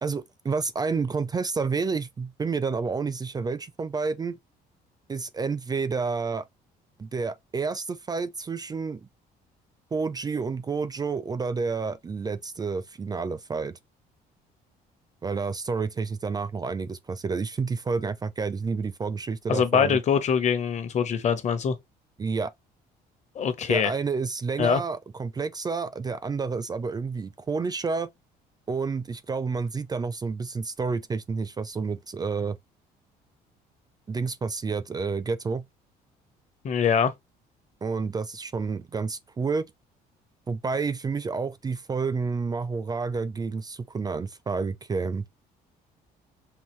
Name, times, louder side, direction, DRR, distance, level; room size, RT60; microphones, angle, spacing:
voice 1, 0.0-4.4 5.1-6.4 7.0-9.1 9.9-13.7 15.2-20.0 22.2-22.5 23.7-28.1 28.7-32.6 34.1-35.6 37.8-39.6 40.5-45.2, right 4 dB, 25° right, 0.4 m, -29 dB
voice 2, 19.5-21.7 23.3-23.9 24.6-24.8 36.6-37.1, left 7 dB, 45° left, 0.9 m, -23 dB
5.5 x 2.6 x 3.1 m
cardioid pair, 110°, 17 cm